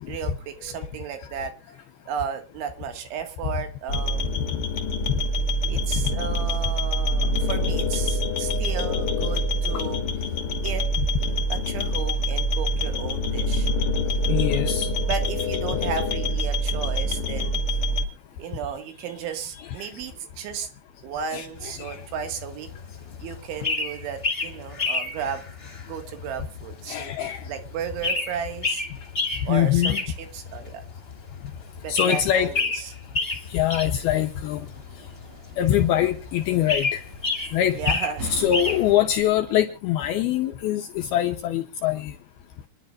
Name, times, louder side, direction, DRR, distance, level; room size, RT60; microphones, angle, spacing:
voice 1, 0.1-1.5 2.1-4.5 5.7-10.0 10.6-10.8 11.5-13.7 15.0-17.6 18.4-20.7 21.0-22.7 23.2-25.4 25.9-28.8 29.5-30.8 31.8-33.0 37.7-38.3, right 7 dB, 85° right, 6 dB, 4.3 m, -34 dB
sound 1, 3.9-18.0, left 1 dB, 60° left, 1.4 m, -25 dB
voice 2, 14.3-14.9 21.3-21.5 21.8-22.0 26.9-27.4 29.5-30.0 31.9-32.5 33.5-34.6 35.6-37.0 37.5-37.8 38.3-42.1, left 11 dB, 80° left, 6 dB, 2.3 m, -23 dB
sound 2, 21.6-38.9, left 3 dB, 25° left, 1.2 m, -31 dB
sound 3, 33.7-39.3, right 1 dB, 70° right, 6.1 m, -43 dB
27.5 x 11.0 x 2.5 m, 0.32 s
omnidirectional pair, 5.3 m